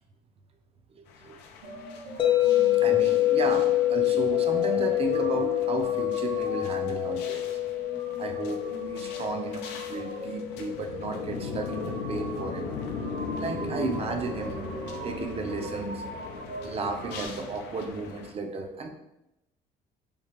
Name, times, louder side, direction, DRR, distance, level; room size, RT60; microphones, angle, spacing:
voice 1, 0.9-1.4 2.7-7.6 8.2-12.8 13.4-14.6 15.0-16.0 16.6-18.9, right 3 dB, 35° right, 5 dB, 0.5 m, -34 dB
sound 1, 1.1-18.3, left 5 dB, 85° left, 0.5 m, -40 dB
sound 2, 1.6-17.3, right 2 dB, 70° right, 0.8 m, -40 dB
sound 3, 2.2-12.3, left 15 dB, 30° left, 0.4 m, -27 dB
3.6 x 2.4 x 3.1 m, 0.89 s
cardioid pair, 110°, 17 cm